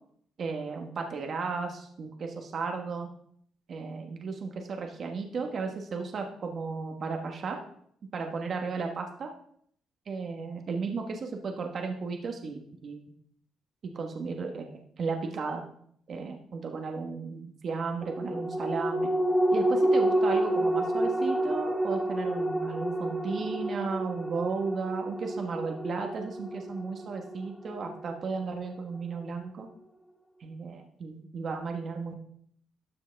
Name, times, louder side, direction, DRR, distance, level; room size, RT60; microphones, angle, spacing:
voice 1, 0.4-3.1 3.7-7.6 8.1-9.3 10.1-13.0 13.9-15.6 16.1-19.1 19.5-29.7 30.4-32.1, right 4 dB, 55° right, 3 dB, 1.4 m, -34 dB
sound 1, 18.0-28.8 29.2-29.3, right 1 dB, 5° left, 1.3 m, -29 dB
12.5 x 6.4 x 3.4 m, 0.63 s
cardioid pair, 90°, 0 cm